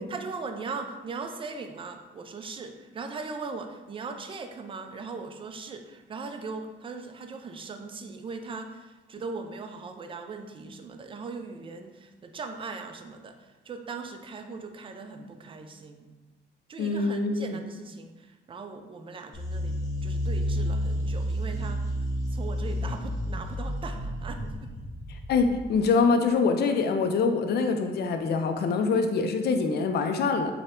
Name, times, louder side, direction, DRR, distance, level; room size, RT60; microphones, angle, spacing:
voice 1, 0.1-16.1 16.7-19.8 20.0-21.8 22.3-24.7, right 4 dB, 25° right, 6 dB, 0.4 m, -39 dB
voice 2, 16.8-17.6 25.3-30.5, left 4 dB, 55° left, 6 dB, 0.4 m, -24 dB
sound 1, 19.3-25.8, equal, 15° left, 1.0 m, -31 dB
4.2 x 2.2 x 3.6 m, 1.2 s
cardioid pair, 90°, 20 cm